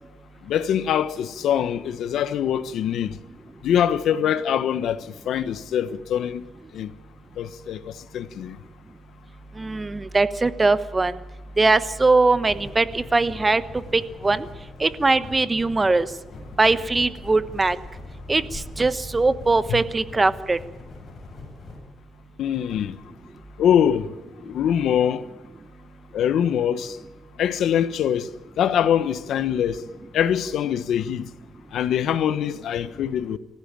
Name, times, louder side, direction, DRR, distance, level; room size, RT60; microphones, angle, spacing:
voice 1, 0.4-3.2 3.6-6.5 6.7-6.9 7.4-8.6 19.7-19.8 22.4-23.0 23.6-24.1 24.4-25.2 26.1-27.0 27.4-28.3 28.6-29.8 30.1-31.3 31.7-33.4, left 9 dB, 75° left, 1.2 m, -23 dB
voice 2, 9.6-11.1 11.6-13.6 13.9-14.5 14.8-16.1 16.6-17.8 18.3-20.6, right 3 dB, 20° right, 1.1 m, -21 dB
sound 1, 12.4-21.8, left 3 dB, 35° left, 7.6 m, -42 dB
24.5 x 15.5 x 8.9 m
cardioid pair, 115°, 0 cm